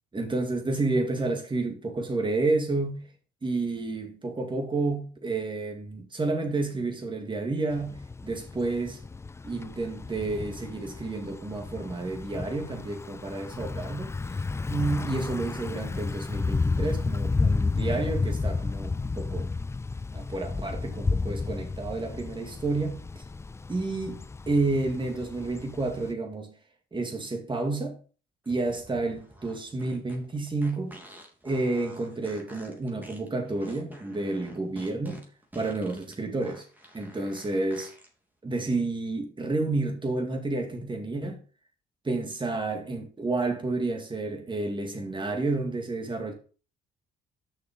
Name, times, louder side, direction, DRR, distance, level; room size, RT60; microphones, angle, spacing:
voice 1, 0.1-3.1 3.4-9.0 9.4-14.1 14.7-19.5 20.1-23.0 23.7-26.5 26.9-28.0 28.5-31.0 31.4-35.2 35.5-36.7 36.9-37.9 38.4-41.4 42.0-46.3, right 3 dB, 25° right, 2.3 m, -30 dB
Thunder / Bicycle, 7.7-26.1, left 3 dB, 15° left, 0.3 m, -32 dB
sound 1, 28.4-38.1, equal, 10° right, 2.8 m, -49 dB
6.6 x 5.9 x 5.3 m
cardioid pair, 90°, 20 cm